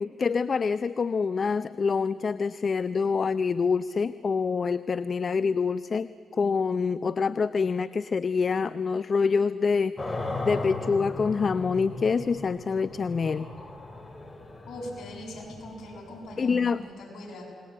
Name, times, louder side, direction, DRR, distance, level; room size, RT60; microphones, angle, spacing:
voice 1, 0.0-10.2 10.4-13.5 16.4-16.8, left 5 dB, 50° left, 15 dB, 0.6 m, -26 dB
sound 1, 10.0-16.9, left 2 dB, 25° left, 3.6 m, -37 dB
voice 2, 14.7-17.5, left 1 dB, 65° left, 0 dB, 7.2 m, -41 dB
28.5 x 20.5 x 8.7 m, 2.4 s
supercardioid pair, 60°, 0 cm